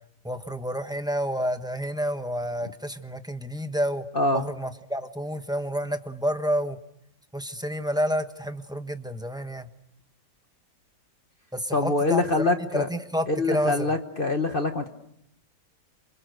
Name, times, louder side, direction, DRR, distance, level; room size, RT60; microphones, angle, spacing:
voice 1, 0.2-4.1 4.3-6.8 7.3-9.7 11.5-13.9, equal, 5° right, 8 dB, 0.7 m, -29 dB
voice 2, 4.1-4.5 11.7-12.9 13.3-14.9, left 2 dB, 35° left, 7 dB, 1.1 m, -24 dB
28.0 x 27.5 x 6.6 m, 0.74 s
omnidirectional pair, 2.1 m